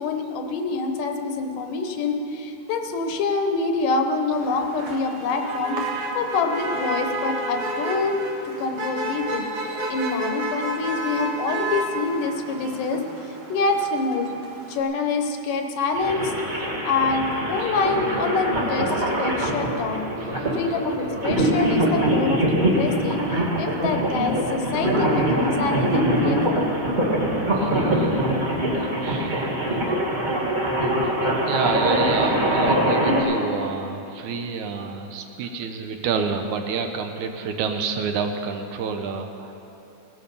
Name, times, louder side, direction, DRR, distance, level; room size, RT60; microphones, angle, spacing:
voice 1, 0.0-5.8 6.2-9.5 9.9-14.3 14.7-20.0 20.5-23.2 23.6-26.9, left 4 dB, 80° left, 5 dB, 2.6 m, -26 dB
Motor vehicle (road), 4.3-14.8, right 2 dB, 55° right, 2.0 m, -31 dB
sound 1, 15.9-33.2, right 1 dB, 20° right, 1.4 m, -23 dB
voice 2, 27.4-28.2 29.0-29.5 31.0-31.1 31.5-39.5, right 5 dB, 75° right, 5 dB, 2.1 m, -29 dB
18.0 x 12.5 x 5.5 m, 2.9 s
omnidirectional pair, 3.7 m